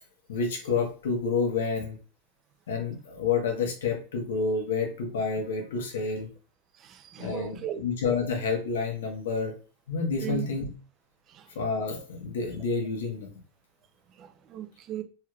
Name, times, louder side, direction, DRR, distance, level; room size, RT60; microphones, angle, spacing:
voice 1, 0.3-2.0 2.7-6.3 7.2-9.5 9.9-10.7 11.5-13.4, left 4 dB, 85° left, 1.1 m, -29 dB
voice 2, 6.8-7.8 10.2-10.5 11.3-11.4 14.2-15.0, right 11 dB, 35° right, 0.5 m, -37 dB
3.4 x 3.2 x 2.3 m
supercardioid pair, 125°, 0 cm